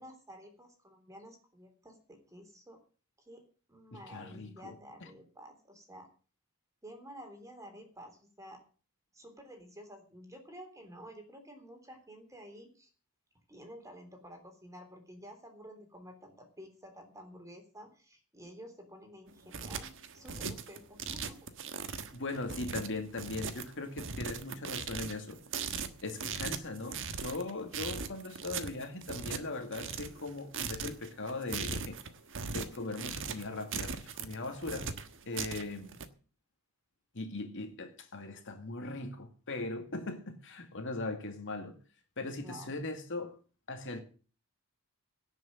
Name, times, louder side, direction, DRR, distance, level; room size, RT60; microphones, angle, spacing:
voice 1, 0.0-2.8 3.2-6.1 6.8-8.6 9.1-12.9 13.5-21.4 35.3-35.4 42.4-42.7, equal, 15° right, 3.5 m, -51 dB
voice 2, 3.9-4.7 5.0-5.1 22.1-25.4 26.0-32.0 32.5-34.9 35.3-36.0 37.1-41.8 42.2-43.4 43.7-44.0, left 2 dB, 60° left, 2.2 m, -39 dB
sound 1, 19.3-36.1, right 5 dB, 60° right, 1.4 m, -39 dB
17.5 x 6.4 x 7.7 m
head